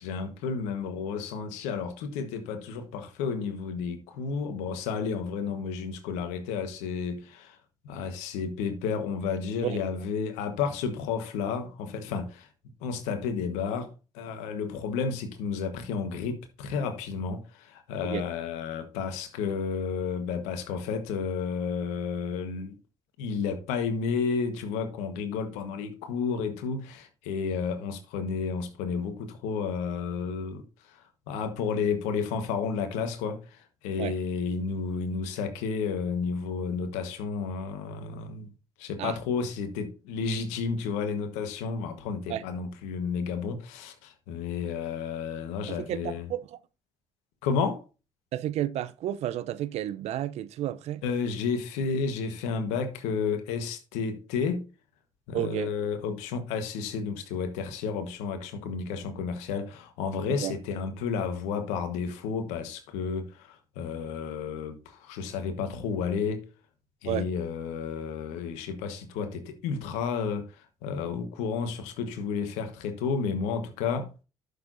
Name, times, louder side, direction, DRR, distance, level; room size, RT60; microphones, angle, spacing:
voice 1, 0.0-7.6 7.8-12.5 12.8-22.7 23.2-31.0 31.3-38.5 38.8-46.3 47.4-47.8 51.0-54.7 55.3-66.5 67.0-74.1, left 5 dB, 80° left, 1.3 m, -31 dB
voice 2, 45.7-46.6 48.3-51.0 55.3-55.7 60.3-60.5 67.0-67.3, right 12 dB, 65° right, 0.6 m, -32 dB
11.5 x 6.7 x 2.6 m
hypercardioid pair, 50°, 12 cm